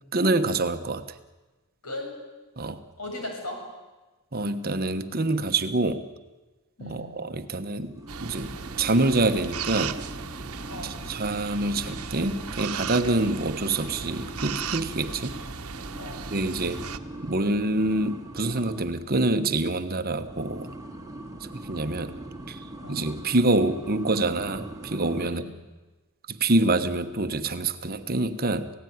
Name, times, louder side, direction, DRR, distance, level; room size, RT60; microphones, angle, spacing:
voice 1, 0.1-1.0 2.6-2.8 4.3-6.1 6.8-10.0 10.8-15.4 16.3-16.8 17.2-20.7 21.5-22.1 22.5-25.4 26.3-28.7, right 2 dB, 45° right, 9 dB, 1.2 m, -26 dB
voice 2, 1.8-2.2 3.0-3.6 6.8-7.1 10.7-11.0 15.9-16.3 22.8-23.0 25.2-25.5, left 2 dB, 85° left, 2 dB, 7.5 m, -37 dB
sound 1, 7.9-19.1 20.1-25.3, right 1 dB, 15° right, 2.5 m, -41 dB
sound 2, 8.1-17.0, right 6 dB, 80° right, 1.1 m, -36 dB
27.0 x 17.0 x 9.5 m, 1.2 s
head